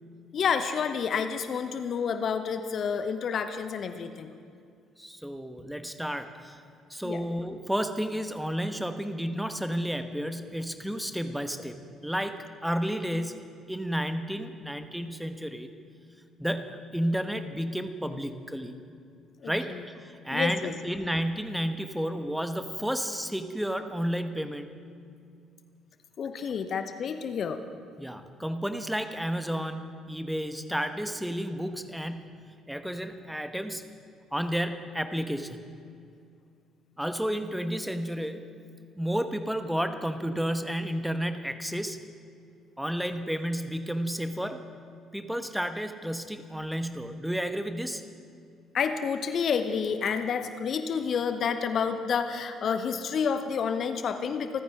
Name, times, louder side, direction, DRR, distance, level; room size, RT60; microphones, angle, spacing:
voice 1, 0.3-4.3 7.0-7.2 19.4-19.8 20.3-20.7 26.2-27.6 48.7-54.6, left 6 dB, 45° left, 9 dB, 0.9 m, -29 dB
voice 2, 5.0-6.6 6.9-15.7 16.4-18.8 19.4-24.7 28.0-33.9 34.3-35.6 37.0-38.5 39.0-42.1 42.8-44.6 45.1-48.1, equal, 5° right, 9 dB, 1.2 m, -32 dB
27.5 x 15.0 x 3.6 m, 2.4 s
figure-of-eight pair, 45°, 0 cm